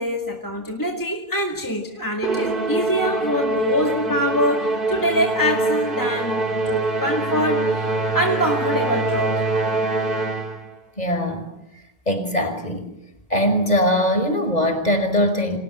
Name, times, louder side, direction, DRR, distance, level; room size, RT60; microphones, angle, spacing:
voice 1, 0.0-9.4, equal, 20° left, 2 dB, 2.2 m, -24 dB
Musical instrument, 2.2-10.7, right 3 dB, 55° right, 2.9 m, -24 dB
voice 2, 11.0-11.5 12.1-12.9 13.3-15.6, equal, 40° left, 6 dB, 5.5 m, -21 dB
30.0 x 26.0 x 7.6 m, 0.85 s
omnidirectional pair, 1.1 m